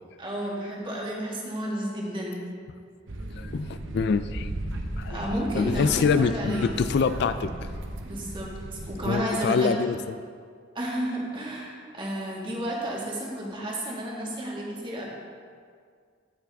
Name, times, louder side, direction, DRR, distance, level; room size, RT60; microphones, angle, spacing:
voice 1, 0.2-2.4 5.1-6.7 8.0-9.7 10.7-15.0, right 1 dB, 25° right, -3 dB, 1.7 m, -32 dB
sound 1, 3.1-9.1, right 1 dB, 75° right, 0.8 m, -35 dB
voice 2, 3.4-4.5 5.0-5.2 5.5-7.7 9.1-10.0, left 5 dB, 55° left, 12 dB, 0.3 m, -25 dB
15.5 x 5.9 x 3.5 m, 2.1 s
head